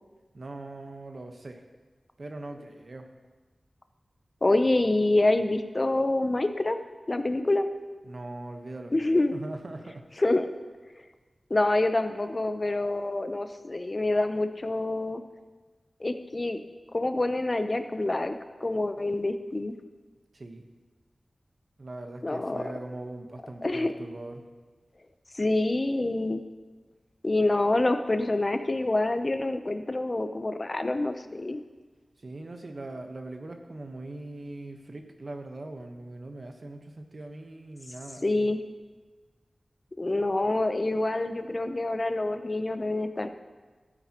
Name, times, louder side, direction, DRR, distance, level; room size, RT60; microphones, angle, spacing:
voice 1, 0.3-1.6 2.2-3.1 8.0-8.9 9.3-10.1 20.3-20.7 21.8-24.5 32.2-38.5, right 2 dB, 60° right, 4 dB, 1.1 m, -41 dB
voice 2, 4.4-6.8 7.1-7.7 8.9-9.3 10.2-10.5 11.5-15.2 16.0-16.6 16.9-19.7 22.2-22.6 23.6-23.9 25.3-26.4 27.2-31.6 38.2-38.6 40.0-43.3, left 2 dB, 40° left, 8 dB, 0.7 m, -26 dB
13.0 x 9.1 x 3.0 m, 1.3 s
wide cardioid pair, 50°, 0 cm